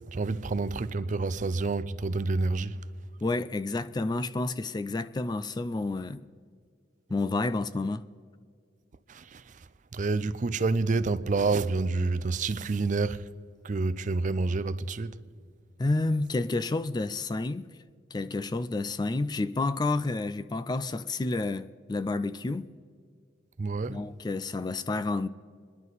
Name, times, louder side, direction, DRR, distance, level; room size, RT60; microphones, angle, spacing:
voice 1, 0.1-2.8 9.1-9.4 9.9-13.3 13.6-15.2 23.6-24.0, right 3 dB, 40° right, 0.5 m, -28 dB
voice 2, 3.2-6.3 7.1-8.0 15.8-17.6 18.1-22.7 23.9-25.3, left 2 dB, 20° left, 0.3 m, -30 dB
27.0 x 11.0 x 4.0 m
head